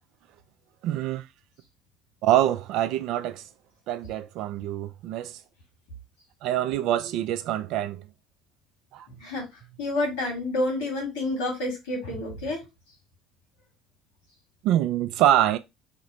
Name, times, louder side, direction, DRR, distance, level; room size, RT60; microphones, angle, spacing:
voice 1, 0.8-1.3 2.2-3.5 3.9-5.4 6.4-8.0 8.9-9.1 14.6-15.6, right 12 dB, 65° right, 0.3 m, -25 dB
voice 2, 9.8-12.6, left 2 dB, 80° left, 1.5 m, -29 dB
2.9 x 2.0 x 3.9 m
hypercardioid pair, 65°, 0 cm